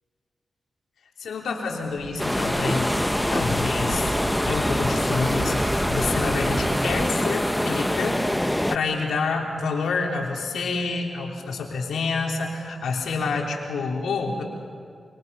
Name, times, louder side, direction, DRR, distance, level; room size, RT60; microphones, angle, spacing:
voice 1, 1.2-4.1 4.5-8.2 8.7-14.4, left 4 dB, 85° left, 0 dB, 3.4 m, -28 dB
sound 1, 1.9-7.1, right 1 dB, 25° right, 1.6 m, -31 dB
sound 2, 2.2-8.8, left 1 dB, 10° left, 0.8 m, -25 dB
26.5 x 26.0 x 5.5 m, 2.2 s
cardioid pair, 45°, 0 cm